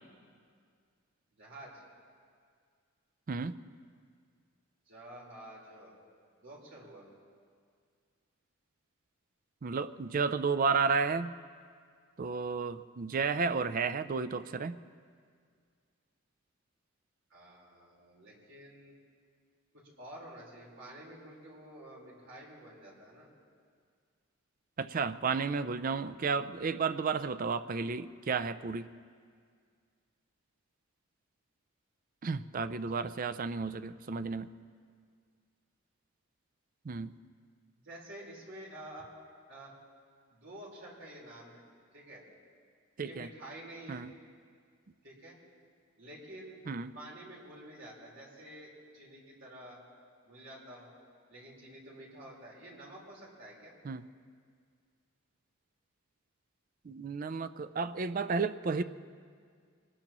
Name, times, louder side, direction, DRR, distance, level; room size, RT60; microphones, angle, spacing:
voice 1, 1.3-1.8 4.9-5.9 6.4-7.1 17.3-18.9 19.7-23.3 33.0-33.1 37.8-39.1 39.5-39.8 40.3-41.6 41.9-42.2 43.0-44.0 45.0-45.4 46.0-46.6 46.9-49.8 50.2-50.9 51.3-53.7, right 1 dB, 60° right, -4 dB, 4.1 m, -49 dB
voice 2, 9.6-11.4 12.2-14.8 24.8-28.9 32.2-34.5 36.8-37.2 43.0-43.3 43.9-44.1 46.7-46.9 53.8-54.1 56.8-58.8, right 5 dB, 40° right, 12 dB, 0.4 m, -32 dB
23.5 x 19.0 x 3.0 m, 2.1 s
head